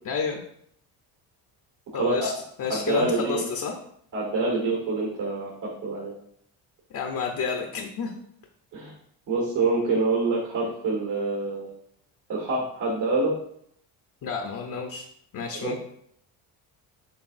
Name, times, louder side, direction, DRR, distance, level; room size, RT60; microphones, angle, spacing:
voice 1, 0.0-0.4 1.9-2.3 2.6-3.7 6.9-8.1 14.2-15.0 15.3-15.8, left 5 dB, 40° left, 3 dB, 0.7 m, -30 dB
voice 2, 1.9-2.3 2.7-3.4 4.1-6.1 8.7-8.9 9.3-11.7 12.3-13.4 15.5-15.8, right 3 dB, 60° right, -4 dB, 1.8 m, -26 dB
6.0 x 3.4 x 2.6 m, 0.69 s
supercardioid pair, 85°, 49 cm